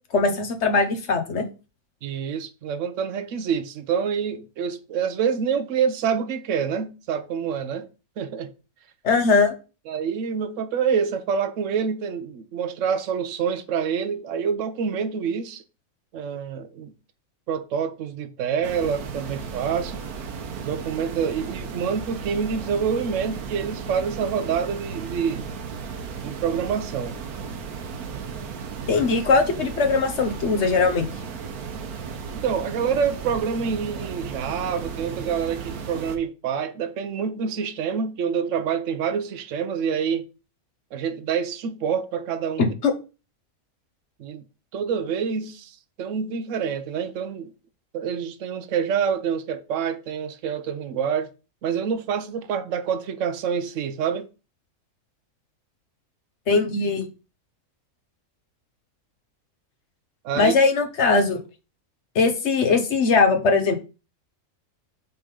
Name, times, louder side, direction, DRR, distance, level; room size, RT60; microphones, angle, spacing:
voice 1, 0.1-1.4 9.0-9.5 28.9-31.1 42.6-42.9 56.5-57.1 60.3-61.4 62.1-63.8, left 4 dB, 55° left, 1.3 m, -20 dB
voice 2, 2.0-7.9 8.2-8.5 9.9-15.6 16.1-16.9 17.5-20.0 20.6-25.5 26.2-27.2 32.3-40.2 40.9-42.7 44.2-44.4 44.7-47.5 47.9-51.3 51.6-54.3 60.2-60.5, right 7 dB, 65° right, 1.0 m, -27 dB
sound 1, 18.6-36.2, right 6 dB, 85° right, 1.4 m, -35 dB
5.7 x 3.8 x 5.5 m
omnidirectional pair, 1.5 m